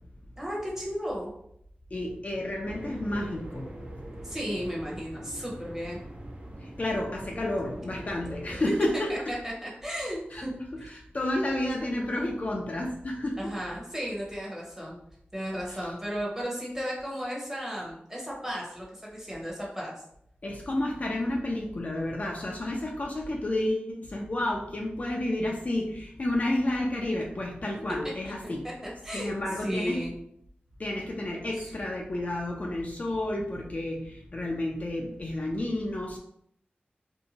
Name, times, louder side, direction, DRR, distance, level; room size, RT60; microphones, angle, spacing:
voice 1, 0.4-1.3 4.2-6.0 9.1-10.9 13.4-15.0 15.3-19.9 28.4-28.5 29.0-29.3 29.6-30.1 31.5-31.7, equal, 15° right, -4 dB, 0.9 m, -34 dB
voice 2, 1.9-3.7 6.6-9.1 10.3-10.4 10.9-13.4 15.7-15.8 20.4-28.6 29.1-30.0 30.8-36.2, left 1 dB, 40° left, -1 dB, 0.4 m, -31 dB
sound 1, 2.6-8.7, right 1 dB, 30° right, 0.5 m, -42 dB
2.6 x 2.2 x 2.7 m, 0.72 s
wide cardioid pair, 90°, 4 cm